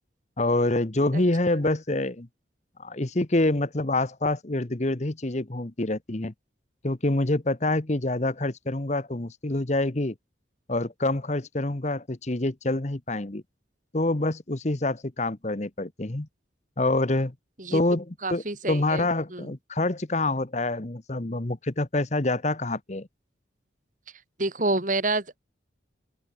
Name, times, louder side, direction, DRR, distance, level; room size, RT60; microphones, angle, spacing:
voice 1, 0.4-2.3 2.8-6.3 6.8-10.1 10.7-13.4 13.9-16.3 16.8-17.3 17.7-18.4 18.7-23.1, left 2 dB, 35° left, 1.1 m, -26 dB
voice 2, 18.2-19.5 24.4-25.4, right 2 dB, 45° right, 2.5 m, -28 dB
open air
head